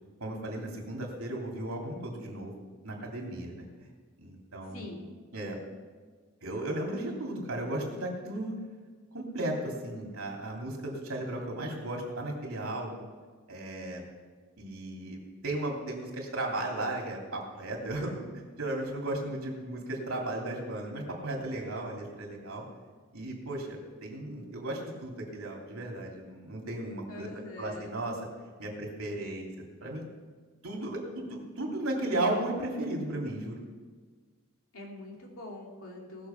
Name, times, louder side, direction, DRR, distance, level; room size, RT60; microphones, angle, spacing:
voice 1, 0.2-2.5 2.8-3.9 4.2-4.8 5.3-5.6 6.4-8.5 9.1-13.1 13.5-14.0 14.6-15.2 15.4-18.3 18.6-22.6 23.1-27.3 27.6-28.2 28.6-29.5 29.8-30.0 30.6-33.6, right 1 dB, 90° right, -1 dB, 3.2 m, -35 dB
voice 2, 4.7-5.1 27.1-27.9 34.7-36.3, left 2 dB, 80° left, -1 dB, 2.8 m, -44 dB
18.5 x 6.7 x 5.9 m, 1.5 s
head